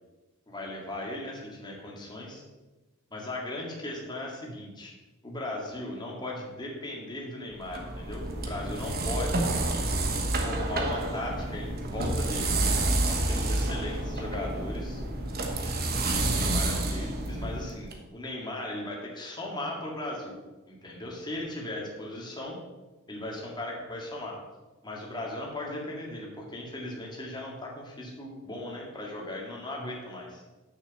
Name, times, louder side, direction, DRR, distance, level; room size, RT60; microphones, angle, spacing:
voice 1, 0.5-2.4 3.1-4.9 5.2-9.5 10.4-12.6 13.0-15.0 16.0-20.3 20.7-22.6 23.1-24.4 24.8-30.4, left 1 dB, 20° left, -2 dB, 2.1 m, -37 dB
sound 1, 7.6-17.9, right 2 dB, 45° right, 1.2 m, -29 dB
6.6 x 6.4 x 7.1 m, 1.1 s
head